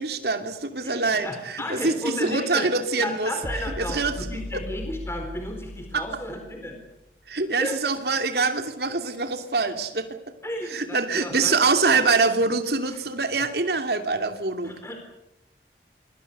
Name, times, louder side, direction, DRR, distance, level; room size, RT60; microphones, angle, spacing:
voice 1, 0.0-3.3 3.8-4.1 4.5-4.6 5.9-6.1 7.3-10.1 10.7-14.7, right 3 dB, 65° right, 7 dB, 2.8 m, -24 dB
voice 2, 0.8-2.7 3.0-6.8 7.6-7.8 10.4-12.0 12.9-13.0 14.6-15.0, left 1 dB, 15° left, 4 dB, 4.2 m, -33 dB
sound 1, 3.4-6.9, left 1 dB, 40° left, 5.9 m, -37 dB
29.0 x 23.5 x 6.9 m, 0.85 s
head